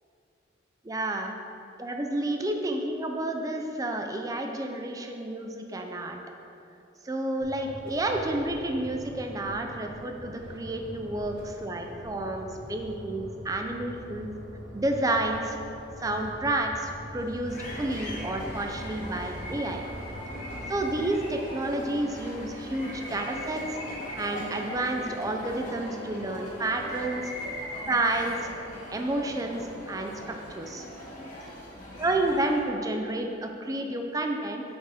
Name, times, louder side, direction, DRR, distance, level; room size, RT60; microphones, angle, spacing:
voice 1, 0.8-1.3 1.8-6.2 7.0-14.3 14.7-15.6 16.0-19.8 20.4-23.8 24.2-27.2 27.9-28.5 28.9-30.8 32.0-34.6, right 2 dB, 20° right, 3 dB, 0.4 m, -30 dB
sound 1, 7.4-21.1, equal, 70° right, 1.1 m, -44 dB
sound 2, 17.5-32.6, left 1 dB, 40° left, 1.0 m, -39 dB
5.9 x 4.1 x 4.8 m, 2.9 s
head